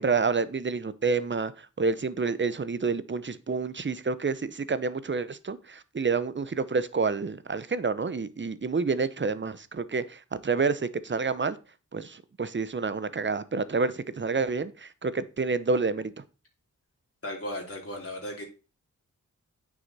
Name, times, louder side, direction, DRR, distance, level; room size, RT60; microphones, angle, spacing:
voice 1, 0.0-11.6 11.9-16.1, right 4 dB, 35° right, 15 dB, 0.8 m, -28 dB
voice 2, 17.2-18.4, left 1 dB, 45° left, -1 dB, 2.9 m, -36 dB
9.6 x 6.3 x 4.2 m, 0.33 s
wide cardioid pair, 85°, 32 cm